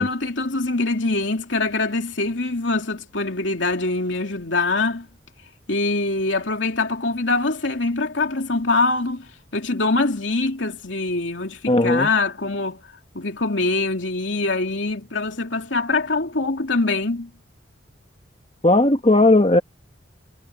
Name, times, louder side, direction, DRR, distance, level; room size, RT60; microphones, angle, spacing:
voice 1, 0.0-5.1 5.7-9.2 9.5-12.8 13.1-17.3, left 3 dB, 85° left, 2.9 m, -23 dB
voice 2, 11.7-12.1 18.6-19.6, left 2 dB, 30° left, 1.2 m, -16 dB
head